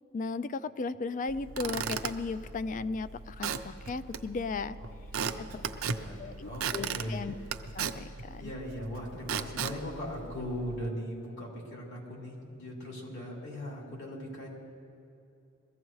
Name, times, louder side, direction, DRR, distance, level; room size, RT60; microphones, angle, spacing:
voice 1, 0.1-4.8 5.4-5.6 6.2-7.3 7.7-8.5, left 4 dB, 40° left, 14 dB, 0.4 m, -36 dB
Squeak / Wood, 1.3-10.9, right 6 dB, 75° right, 0.6 m, -37 dB
voice 2, 4.8-7.3 8.4-14.5, equal, 60° left, -3 dB, 3.3 m, -39 dB
22.0 x 15.0 x 3.2 m, 2.8 s
head